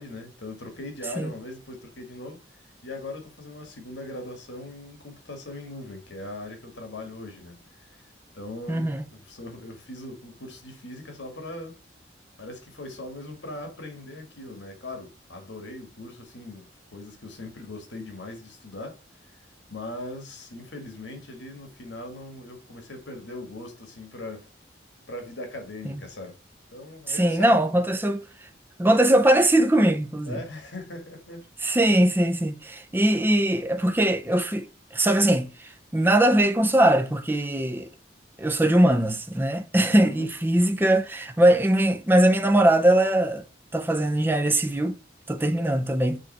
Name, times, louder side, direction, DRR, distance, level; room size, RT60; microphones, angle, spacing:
voice 1, 0.0-2.4 2.8-8.0 8.3-11.8 12.4-19.0 19.3-19.4 19.7-24.5 25.1-26.4 26.7-27.8 30.3-31.5 39.9-40.3, left 1 dB, 75° left, 1.8 m, -40 dB
voice 2, 8.7-9.0 25.8-26.0 27.1-28.2 28.8-30.4 31.6-34.7 34.9-37.9 38.4-43.4 43.7-45.0 45.3-46.2, right 1 dB, 10° right, 0.6 m, -21 dB
6.4 x 3.1 x 5.5 m
head